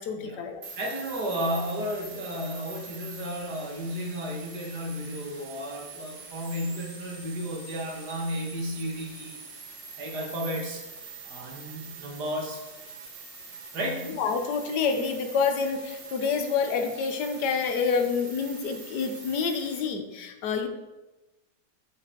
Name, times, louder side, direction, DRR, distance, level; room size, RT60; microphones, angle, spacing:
voice 1, 0.0-0.6 14.2-20.7, left 5 dB, 75° left, 5 dB, 1.5 m, -28 dB
sound 1, 0.6-19.8, right 4 dB, 45° right, 1.4 m, -44 dB
voice 2, 0.8-9.4 10.0-10.8 11.2-12.6 13.7-14.1, equal, 70° right, -1 dB, 2.2 m, -33 dB
6.9 x 6.1 x 4.5 m, 1.1 s
omnidirectional pair, 1.8 m